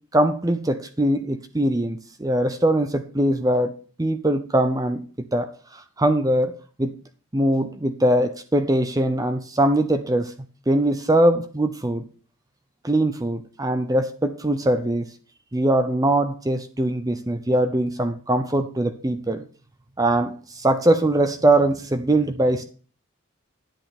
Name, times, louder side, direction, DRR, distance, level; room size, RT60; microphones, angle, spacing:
voice 1, 0.1-6.9 7.3-10.3 10.7-12.1 12.8-15.1 15.5-19.4 20.0-22.7, right 1 dB, 15° right, 0.6 m, -22 dB
10.5 x 8.7 x 4.2 m
head